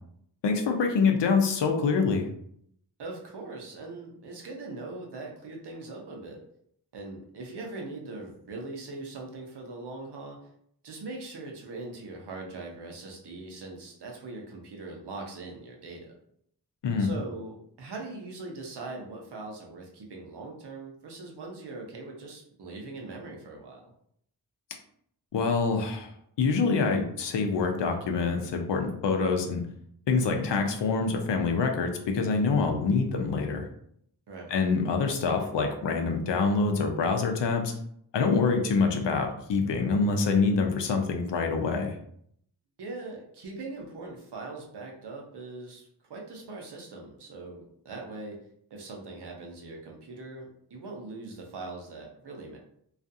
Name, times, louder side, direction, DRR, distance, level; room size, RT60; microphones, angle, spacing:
voice 1, 0.4-2.3 16.8-17.1 25.3-26.1 26.4-29.6 30.1-33.7 34.5-37.7 38.1-42.0, left 4 dB, 80° left, 4 dB, 0.6 m, -25 dB
voice 2, 3.0-6.4 6.9-10.4 10.8-16.1 17.0-23.8 34.3-34.5 42.8-48.4 48.7-52.6, right 3 dB, 70° right, 0 dB, 0.8 m, -41 dB
2.4 x 2.4 x 2.6 m, 0.69 s
wide cardioid pair, 65°, 42 cm